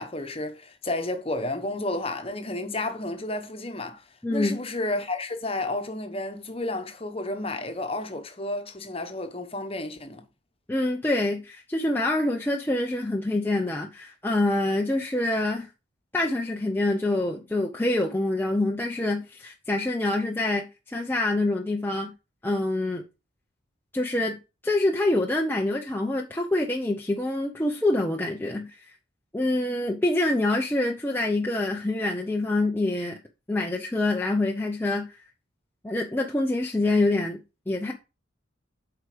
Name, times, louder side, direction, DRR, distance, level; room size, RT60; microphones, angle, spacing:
voice 1, 0.0-4.0 4.3-10.2, left 2 dB, 30° left, 1.2 m, -31 dB
voice 2, 4.2-4.6 10.7-15.7 16.1-22.1 22.4-23.0 23.9-24.4 24.6-28.9 29.3-33.2 33.5-35.2 35.8-37.4 37.7-37.9, left 2 dB, 10° left, 0.7 m, -26 dB
8.0 x 4.8 x 5.0 m
head